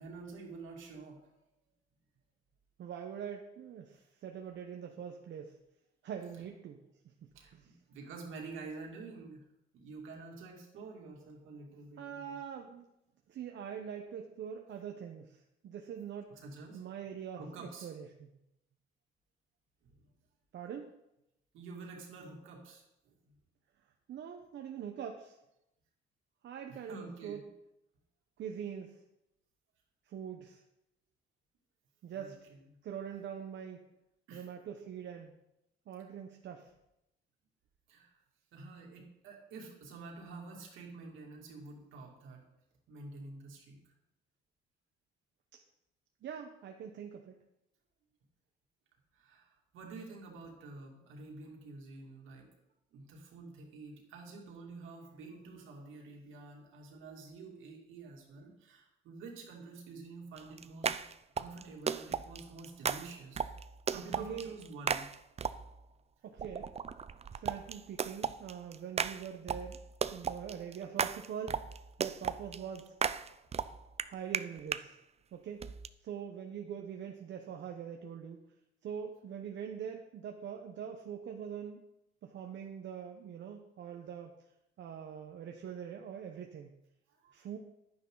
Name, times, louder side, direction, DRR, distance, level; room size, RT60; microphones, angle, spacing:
voice 1, 0.0-1.3 7.3-9.4 9.7-12.4 16.3-16.8 17.4-17.9 19.8-20.1 21.5-23.4 26.7-27.4 32.1-32.8 34.3-34.5 37.9-38.2 38.5-42.4 42.9-43.9 49.1-52.5 52.9-61.0 61.4-63.4 63.9-65.1 87.1-87.3, right 3 dB, 85° right, 0 dB, 2.7 m, -49 dB
voice 2, 2.8-5.6 6.0-7.7 12.0-12.9 13.3-16.4 16.7-18.3 20.5-20.9 24.1-25.4 26.4-27.4 28.4-29.0 30.1-30.6 32.0-32.4 32.8-33.8 34.3-35.4 35.9-36.7 46.2-47.4 63.9-64.5 66.2-66.7 67.3-69.8 70.1-71.7 72.0-72.9 74.0-74.9 75.3-75.7 76.0-78.4 78.8-81.8 82.2-84.3 84.8-86.8 87.3-87.6, right 8 dB, 65° right, 3 dB, 1.0 m, -43 dB
sound 1, 60.4-65.8 66.4-74.8 75.6-75.9, right 6 dB, 30° right, 0.5 m, -36 dB
11.0 x 9.7 x 4.0 m, 0.85 s
cardioid pair, 90°, 20 cm